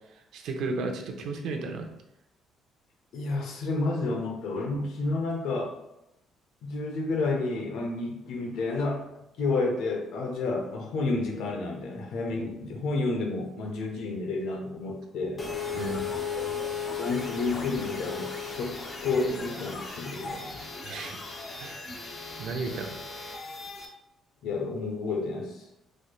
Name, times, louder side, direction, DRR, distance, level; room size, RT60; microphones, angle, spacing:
voice 1, 0.3-1.9 15.7-16.0 20.8-21.2 21.6-21.9 22.4-23.0, right 3 dB, 75° right, 4 dB, 0.6 m, -33 dB
voice 2, 3.1-5.7 6.6-9.0 9.4-15.5 17.0-20.5 24.4-25.6, left 3 dB, 80° left, 2 dB, 0.8 m, -30 dB
sound 1, 15.4-23.9, left 5 dB, 25° left, 0.5 m, -36 dB
4.1 x 3.2 x 2.4 m, 0.84 s
cardioid pair, 155°, 0 cm